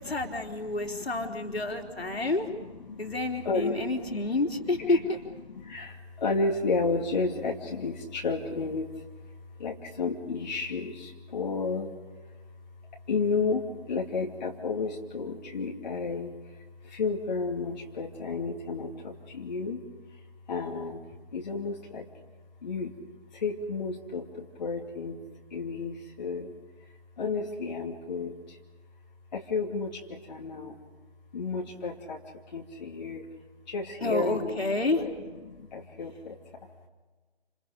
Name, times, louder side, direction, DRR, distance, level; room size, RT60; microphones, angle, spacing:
voice 1, 0.0-2.5 3.0-5.2 34.0-35.0, left 2 dB, 65° left, 3 dB, 3.6 m, -29 dB
voice 2, 0.7-2.2 2.5-2.6 2.9-3.1 3.4-3.9 4.8-5.0 5.5-8.9 9.6-11.9 13.1-19.8 20.5-21.0 21.3-22.1 22.6-22.9 23.3-25.2 25.5-26.5 27.2-28.6 29.3-30.8 31.3-32.2 32.5-33.3 33.7-34.6 35.0-35.1 35.4-36.4, left 4 dB, 40° left, -1 dB, 2.7 m, -32 dB
29.5 x 28.0 x 5.2 m, 1.3 s
figure-of-eight pair, 145°, 33 cm